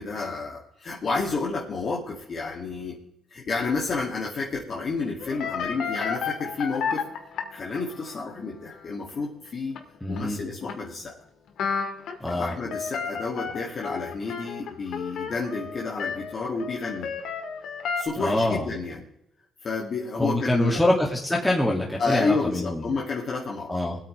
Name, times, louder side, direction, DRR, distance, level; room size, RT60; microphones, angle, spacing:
voice 1, 0.0-3.0 3.3-7.0 7.5-9.8 10.1-11.2 12.2-17.1 18.0-19.0 19.6-20.8 22.0-23.8, left 4 dB, 50° left, -3 dB, 2.5 m, -30 dB
sound 1, 5.2-8.2 8.7-8.8 9.1-9.2 9.8-10.3 10.6-10.7 11.6-18.0, left 6 dB, 75° left, 1.9 m, -32 dB
voice 2, 10.0-10.4 12.2-12.5 18.2-18.7 20.2-22.9 23.7-24.0, left 1 dB, 10° left, -3 dB, 2.4 m, -24 dB
21.5 x 8.8 x 3.4 m, 0.79 s
cardioid pair, 90°, 0 cm